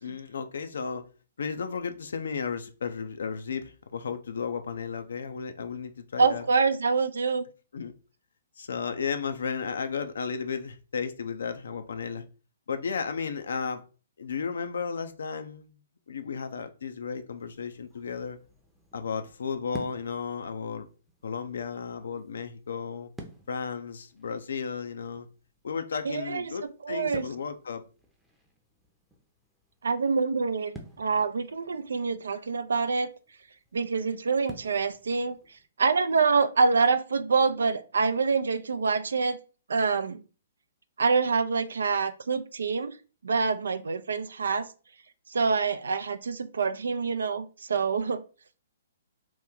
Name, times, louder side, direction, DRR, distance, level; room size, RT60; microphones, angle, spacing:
voice 1, 0.0-1.0 1.4-6.4 7.7-7.9 8.6-12.2 12.7-13.8 14.2-15.7 16.1-18.4 18.9-20.9 21.2-23.1 23.5-25.3 25.6-27.8, left 6 dB, 75° left, 0.4 m, -34 dB
voice 2, 6.2-7.5 26.0-26.5 26.8-27.3 29.8-33.1 33.7-35.4 35.8-39.4 39.7-40.2 41.0-42.9 43.2-44.7 45.3-48.2, right 4 dB, 80° right, 0.3 m, -26 dB
sound 1, 17.4-35.7, right 1 dB, ahead, 0.6 m, -52 dB
2.9 x 2.2 x 3.6 m
hypercardioid pair, 135°, 0 cm